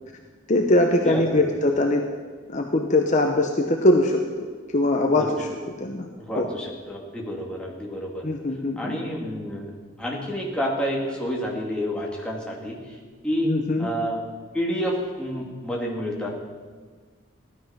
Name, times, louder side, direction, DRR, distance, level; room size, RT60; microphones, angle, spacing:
voice 1, 0.5-2.1 2.5-4.5 4.7-5.5 5.8-6.1 6.4-6.5 8.2-9.0 13.4-13.9, left 1 dB, 40° left, 3 dB, 0.9 m, -21 dB
voice 2, 6.2-8.2 8.8-9.7 10.0-13.0 13.2-13.5 13.8-14.2 14.5-16.3, equal, 5° left, -3 dB, 2.6 m, -29 dB
16.0 x 11.5 x 5.8 m, 1.5 s
head